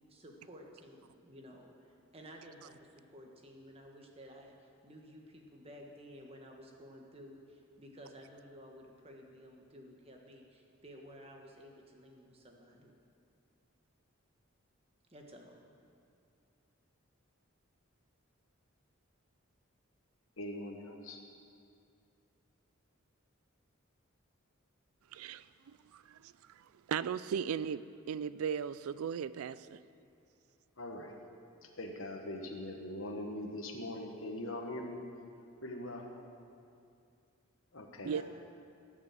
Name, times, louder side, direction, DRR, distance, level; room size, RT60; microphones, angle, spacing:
voice 1, 0.1-12.9 15.1-15.6 38.0-38.2, equal, 30° right, 1.4 m, -53 dB
voice 2, 20.4-21.2 30.8-31.1 31.6-35.0 35.6-36.1 37.7-38.1, left 1 dB, 65° left, 1.4 m, -42 dB
voice 3, 25.1-25.5 25.9-29.8 38.0-38.2, right 7 dB, 85° right, 0.4 m, -37 dB
17.0 x 6.2 x 7.6 m
head